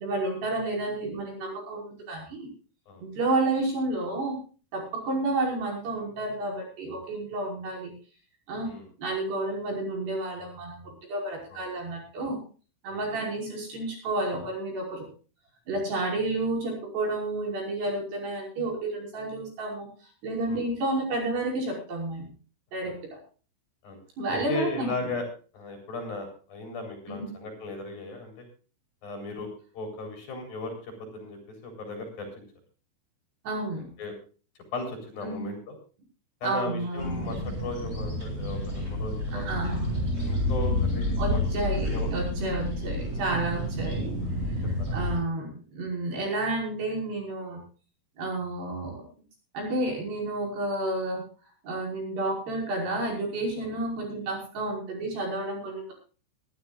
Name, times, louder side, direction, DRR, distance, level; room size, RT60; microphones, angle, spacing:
voice 1, 0.0-2.5 3.0-4.4 4.7-7.9 8.5-8.7 9.0-12.4 12.8-15.1 15.7-19.9 20.2-22.3 22.7-23.2 24.2-25.1 27.1-27.3 33.5-33.9 35.2-35.6 36.4-37.4 39.3-39.9 41.2-44.1 44.9-47.6 48.2-49.0 49.5-51.2 51.6-55.9, right 2 dB, 55° right, -1 dB, 7.4 m, -31 dB
voice 2, 24.3-25.3 25.5-28.5 29.0-32.5 34.0-34.1 34.7-35.8 36.4-39.5 40.3-42.1 44.8-45.4 45.9-46.1 53.6-53.7, left 2 dB, 50° left, 4 dB, 5.5 m, -37 dB
sound 1, 37.0-45.2, left 1 dB, 10° right, 6.8 m, -29 dB
23.5 x 12.0 x 2.4 m, 0.36 s
omnidirectional pair, 5.7 m